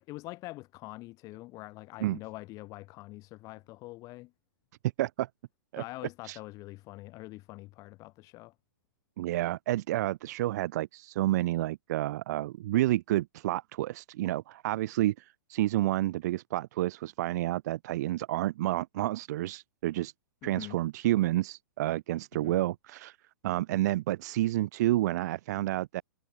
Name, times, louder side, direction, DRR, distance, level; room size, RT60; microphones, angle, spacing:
voice 1, 0.0-4.3 5.8-8.5 20.4-20.8 22.3-22.6, left 20 dB, 30° left, 0.7 m, -44 dB
voice 2, 5.0-5.3 5.7-5.8 6.2-6.4 9.2-20.1 20.4-23.2 23.4-26.0, right 15 dB, 50° right, 0.4 m, -30 dB
hypercardioid pair, 120°, 12 cm